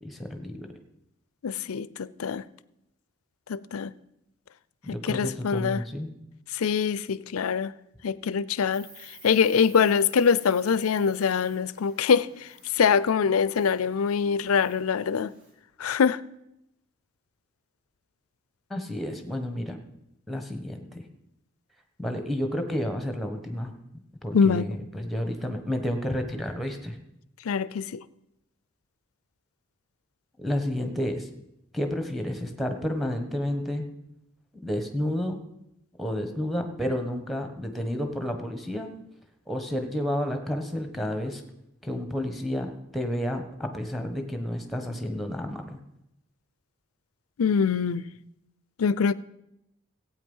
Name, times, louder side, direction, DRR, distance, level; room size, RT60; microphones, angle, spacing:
voice 1, 0.0-0.7 4.8-6.1 18.7-19.8 20.3-21.0 22.0-23.7 24.2-27.0 30.4-31.3 31.7-33.9 34.6-35.4 36.0-38.9 39.5-41.4 41.8-45.8, left 1 dB, ahead, 1.2 m, -31 dB
voice 2, 1.4-2.4 3.5-3.9 5.0-5.8 6.5-7.7 8.0-8.9 9.2-12.3 12.7-15.3 15.8-16.2 24.3-24.7 27.5-28.0 47.4-48.0 48.8-49.1, left 6 dB, 90° left, 0.5 m, -24 dB
Insect, 8.7-15.5, right 2 dB, 75° right, 4.9 m, -54 dB
16.0 x 8.9 x 5.5 m
head